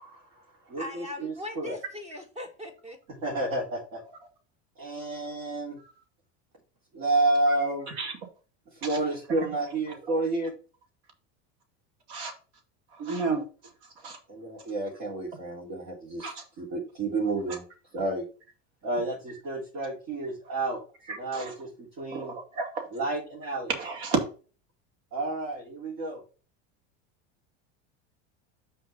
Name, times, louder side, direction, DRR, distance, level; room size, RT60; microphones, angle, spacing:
voice 1, 0.0-1.8 3.2-4.0 4.8-5.8 6.9-7.9 8.8-10.5 13.2-13.4 14.3-17.6 17.9-18.2 18.8-20.8 21.1-22.3 22.9-23.7 25.1-26.2, right 2 dB, 50° right, 3.3 m, -30 dB
voice 2, 0.8-3.0, left 1 dB, 20° right, 1.9 m, -40 dB
voice 3, 12.9-13.4 14.0-14.2 16.2-16.4 17.5-17.6 21.1-21.5 22.1-22.9 23.7-24.3, right 4 dB, 80° right, 2.7 m, -31 dB
6.5 x 4.4 x 5.4 m
supercardioid pair, 135°, 34 cm